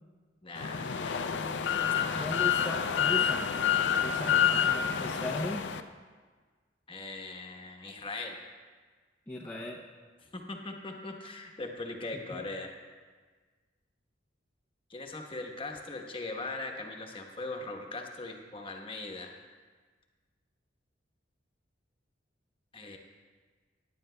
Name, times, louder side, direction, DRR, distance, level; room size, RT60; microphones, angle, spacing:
voice 1, 0.4-1.2 1.7-2.3 6.9-8.4 9.4-9.6 10.3-12.7 14.9-19.3 22.7-23.0, left 2 dB, 30° left, 2 dB, 1.1 m, -40 dB
sound 1, 0.6-5.8, left 8 dB, 65° left, 0.5 m, -28 dB
voice 2, 2.2-3.5 4.0-5.7 9.3-9.8 12.1-12.4, left 1 dB, 10° left, -4 dB, 0.6 m, -38 dB
17.5 x 10.5 x 2.2 m, 1.5 s
head